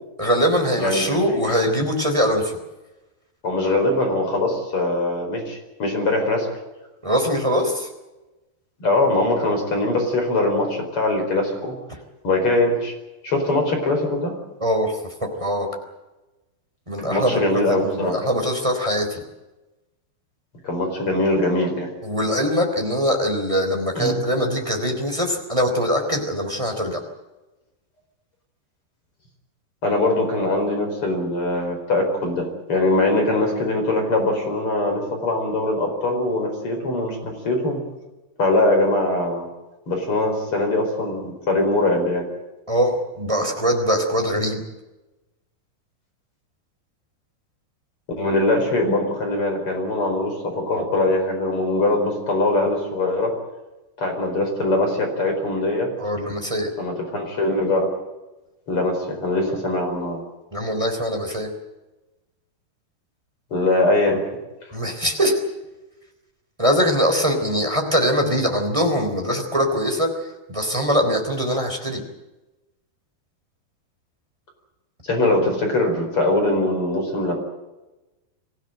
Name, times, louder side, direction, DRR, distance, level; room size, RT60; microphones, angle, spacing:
voice 1, 0.2-2.6 7.0-7.9 14.6-15.7 16.9-17.4 17.7-19.2 22.0-27.0 42.7-44.6 56.0-56.7 60.5-61.5 64.7-65.4 66.6-72.0, equal, 10° right, 3 dB, 3.1 m, -22 dB
voice 2, 0.8-1.4 3.4-6.5 8.8-11.8 12.2-12.9 13.2-14.3 17.0-18.2 20.6-21.9 24.0-24.2 29.8-32.4 32.7-37.8 38.4-39.5 39.9-42.2 48.2-53.3 54.0-55.9 56.8-57.9 58.7-60.2 63.5-64.2 75.1-77.4, left 2 dB, 30° left, 3 dB, 5.3 m, -22 dB
25.0 x 15.5 x 9.1 m, 1.1 s
omnidirectional pair, 4.8 m